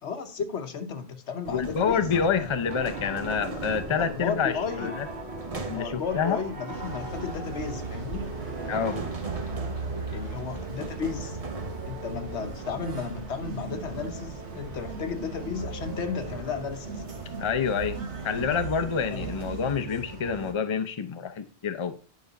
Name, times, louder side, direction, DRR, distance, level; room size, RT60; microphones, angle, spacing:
voice 1, 0.0-2.1 2.4-2.5 3.9-4.9 5.7-8.3 10.1-11.4 11.8-17.0 19.1-19.2, left 6 dB, 80° left, 7 dB, 1.2 m, -34 dB
sound 1, 1.4-19.5, right 3 dB, 35° right, 1.0 m, -41 dB
voice 2, 1.5-5.1 5.6-6.4 8.7-9.0 17.4-18.0 18.2-21.9, left 6 dB, 35° left, 9 dB, 0.6 m, -27 dB
Piano, 2.7-9.1, right 2 dB, 70° right, 1.5 m, -40 dB
sound 2, 6.7-20.5, right 4 dB, 85° right, 1.8 m, -38 dB
9.6 x 5.2 x 4.0 m, 0.37 s
omnidirectional pair, 1.1 m